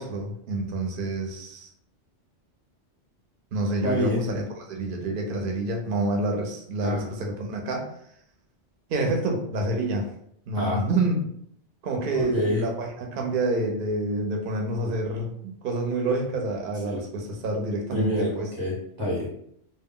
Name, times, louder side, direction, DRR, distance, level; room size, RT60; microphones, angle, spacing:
voice 1, 0.0-1.7 3.5-7.8 8.9-10.1 10.5-11.2 11.8-18.5, right 2 dB, 55° right, 2 dB, 0.7 m, -28 dB
voice 2, 3.8-4.3 6.8-7.1 10.5-10.8 12.1-12.6 16.9-17.0 17.9-18.3 18.6-19.3, left 1 dB, 20° right, -6 dB, 0.8 m, -27 dB
2.2 x 2.0 x 3.6 m, 0.69 s
omnidirectional pair, 1.2 m